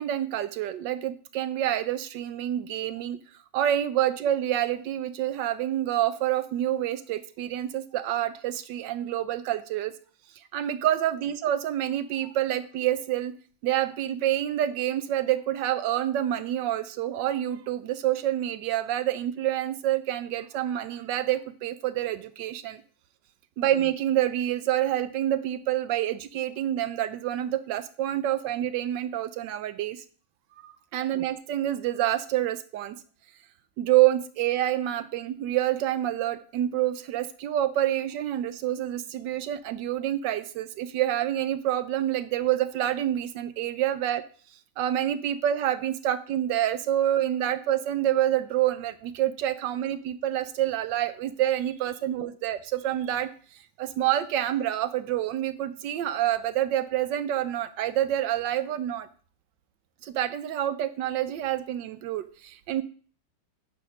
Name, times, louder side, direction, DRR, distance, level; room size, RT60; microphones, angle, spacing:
voice 1, 0.0-3.2 3.5-9.9 10.5-13.3 13.6-22.8 23.6-30.0 30.6-33.0 33.8-44.2 44.8-59.1 60.0-62.8, right 12 dB, 75° right, 13 dB, 1.1 m, -27 dB
9.9 x 3.6 x 6.2 m, 0.43 s
omnidirectional pair, 2.2 m